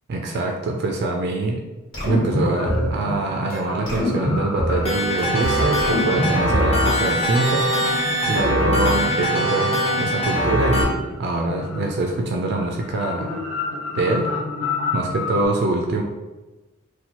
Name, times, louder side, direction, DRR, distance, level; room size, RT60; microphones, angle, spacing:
voice 1, 0.1-1.7 2.0-7.7 8.3-13.3 13.9-14.3 14.9-16.0, right 2 dB, 50° right, 1 dB, 0.3 m, -24 dB
sound 1, 1.9-2.9 3.5-3.6 3.9-4.9 5.2-6.8, equal, 55° left, 1.3 m, -23 dB
sound 2, 2.5-15.5, left 3 dB, 80° left, 0.6 m, -32 dB
sound 3, 4.8-10.8, equal, 30° left, 0.6 m, -22 dB
2.8 x 2.2 x 4.1 m, 1.1 s
head